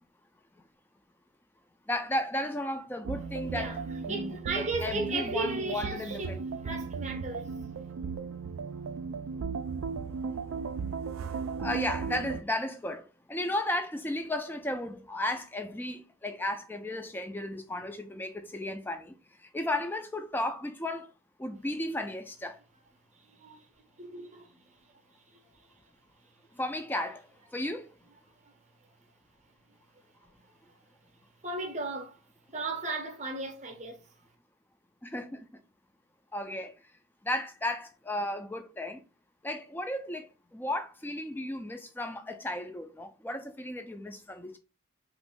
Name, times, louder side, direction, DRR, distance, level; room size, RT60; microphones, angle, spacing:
voice 1, 1.9-3.8 4.1-6.4 11.6-19.2 19.4-21.1 21.4-22.6 26.6-27.2 27.5-27.9 35.0-35.5 36.3-36.7 37.2-39.0 39.4-44.6, left 1 dB, 10° left, 0.3 m, -34 dB
sound 1, 3.0-12.4, right 5 dB, 75° right, 0.3 m, -36 dB
voice 2, 3.5-3.8 4.1-7.5 23.1-23.7 24.0-24.8 25.3-25.7 28.4-28.5 31.4-32.2 32.5-34.0, right 3 dB, 35° right, 0.7 m, -36 dB
3.0 x 2.5 x 3.5 m
head